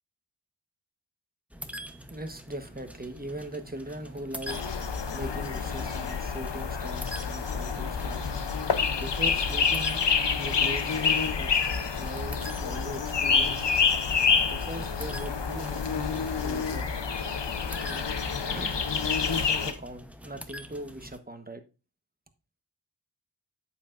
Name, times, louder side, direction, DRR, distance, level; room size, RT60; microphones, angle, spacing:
sound 1, 1.5-21.2, equal, 5° right, 0.8 m, -46 dB
voice 1, 2.1-4.6 5.1-8.3 9.0-10.0 10.4-10.9 11.3-11.5 12.0-13.7 14.5-16.9 17.8-18.1 18.5-18.9 19.2-21.6, right 1 dB, 20° right, 1.2 m, -40 dB
sound 2, 4.5-19.7, left 6 dB, 90° left, 0.8 m, -28 dB
8.7 x 7.9 x 2.5 m
wide cardioid pair, 45°, 41 cm